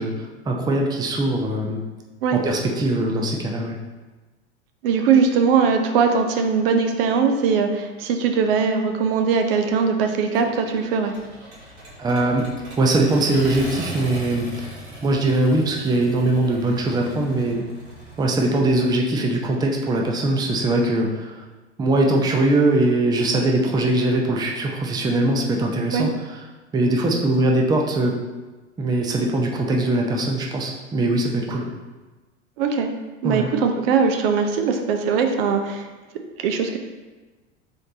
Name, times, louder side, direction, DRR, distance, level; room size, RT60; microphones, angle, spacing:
voice 1, 0.0-1.8 2.3-3.8 12.0-12.4 12.8-14.8 15.0-17.6 18.2-21.3 21.8-26.4 26.7-28.2 28.8-31.7 33.2-33.5, right 2 dB, 10° right, 1 dB, 0.5 m, -21 dB
voice 2, 4.8-11.1 25.9-26.1 32.6-32.9 33.2-35.9 36.4-36.8, right 5 dB, 55° right, 5 dB, 0.6 m, -20 dB
Accelerating revving vroom, 10.3-18.6, equal, 80° right, 1.5 m, -39 dB
4.1 x 3.2 x 3.8 m, 1.2 s
figure-of-eight pair, 85°, 34 cm